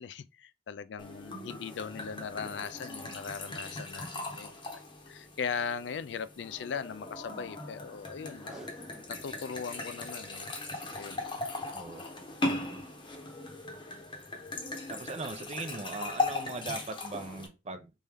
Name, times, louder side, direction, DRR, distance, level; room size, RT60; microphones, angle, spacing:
voice 1, 0.0-4.6 5.1-10.5 10.9-11.3, left 6 dB, 75° left, 0.4 m, -39 dB
sound 1, 1.0-17.5, left 2 dB, 25° left, 0.9 m, -38 dB
Packing tape duct tape, 8.3-9.4 9.8-9.9 10.1-10.2 10.7-11.0 12.1-12.3 12.9-13.0, equal, 5° right, 0.7 m, -50 dB
voice 2, 11.7-12.1 14.9-17.9, right 3 dB, 35° right, 0.6 m, -39 dB
4.2 x 3.6 x 3.4 m
head